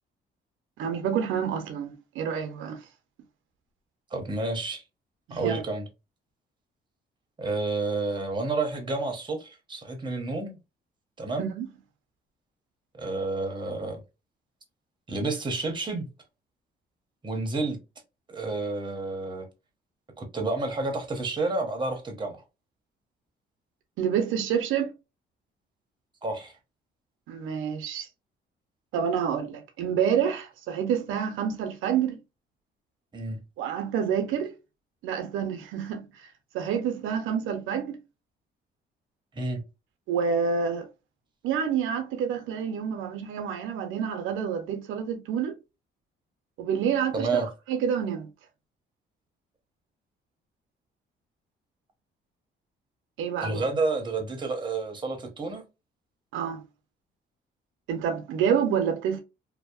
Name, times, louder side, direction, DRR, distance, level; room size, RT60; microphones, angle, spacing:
voice 1, 0.8-2.8 5.3-5.6 11.4-11.7 24.0-24.9 27.3-28.1 28.9-32.2 33.6-34.5 35.0-36.3 36.5-38.0 40.1-40.9 41.4-45.5 46.6-47.3 47.7-48.3 53.2-53.7 56.3-56.6 57.9-59.2, right 7 dB, 90° right, 0.5 m, -28 dB
voice 2, 4.1-4.8 5.3-5.9 7.4-10.6 11.2-11.5 13.0-14.0 15.1-16.1 17.2-17.8 18.3-19.5 20.2-22.4 26.2-26.6 33.1-33.4 39.3-39.6 47.1-47.5 53.4-55.6, right 3 dB, 25° right, 0.7 m, -30 dB
2.6 x 2.0 x 2.3 m
cardioid pair, 90°, 20 cm